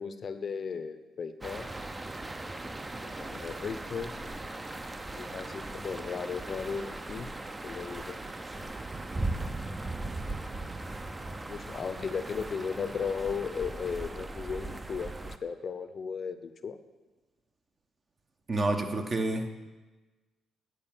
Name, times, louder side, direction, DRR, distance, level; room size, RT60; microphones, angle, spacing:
voice 1, 0.0-1.7 3.0-4.1 5.1-7.3 7.6-8.2 8.6-8.7 11.5-16.8, left 6 dB, 50° left, 11 dB, 0.6 m, -36 dB
sound 1, 1.4-15.4, right 2 dB, 20° right, 0.5 m, -38 dB
voice 2, 18.5-19.7, right 2 dB, 35° right, 5 dB, 1.0 m, -29 dB
9.7 x 4.6 x 7.4 m, 1.2 s
cardioid pair, 90°, 0 cm